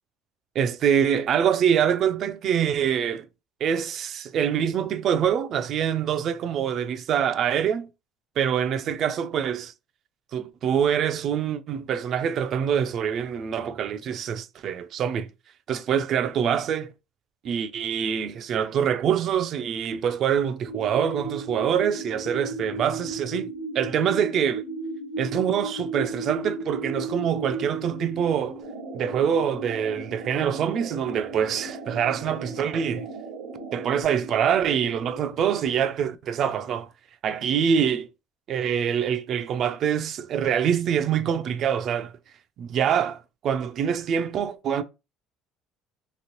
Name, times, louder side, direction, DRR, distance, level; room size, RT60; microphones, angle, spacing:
voice 1, 0.6-3.2 3.6-7.9 8.4-9.7 10.3-15.3 15.7-16.9 17.4-23.5 23.7-24.6 25.2-28.6 28.9-33.1 33.7-36.9 37.2-38.1 38.5-42.1 42.6-44.8, right 8 dB, 40° right, 0.3 m, -25 dB
sound 1, 20.7-35.7, right 2 dB, 65° left, 0.9 m, -36 dB
sound 2, 28.6-34.0, right 5 dB, 80° right, 0.8 m, -40 dB
2.9 x 2.8 x 3.0 m
cardioid pair, 160°, 0 cm